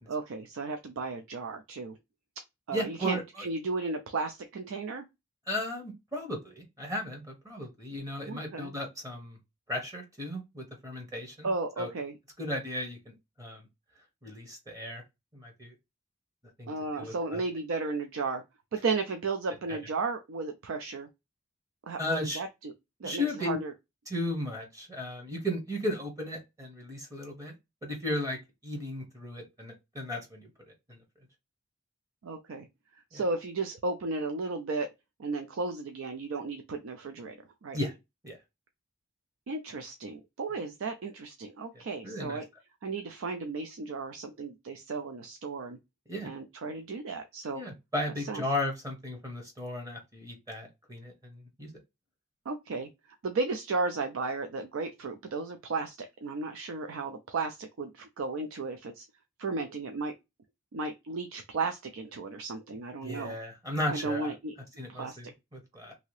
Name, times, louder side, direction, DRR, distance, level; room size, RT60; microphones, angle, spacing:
voice 1, 0.1-2.0 2.7-5.0 8.3-8.7 11.4-12.2 16.7-18.4 18.7-21.1 21.8-22.7 23.0-23.7 32.2-32.7 33.1-34.9 35.2-37.3 37.6-37.8 39.5-42.5 42.8-45.8 46.2-47.6 48.3-48.4 52.5-52.9 53.2-56.0 56.2-59.1 59.4-60.1 60.7-63.4 63.9-64.5 64.9-65.2, right 3 dB, 80° right, 0.4 m, -34 dB
voice 2, 2.7-3.2 5.5-9.4 9.7-11.5 11.8-11.9 12.4-13.6 14.2-15.0 15.3-15.7 16.6-17.4 19.7-19.8 22.0-22.4 23.0-23.6 24.1-27.5 27.8-30.5 30.9-31.0 33.1-33.2 37.7-37.9 38.2-38.4 41.7-42.4 46.1-46.3 47.5-51.7 63.0-64.3 64.8-65.9, left 1 dB, 15° right, 0.8 m, -35 dB
2.8 x 2.7 x 3.1 m
head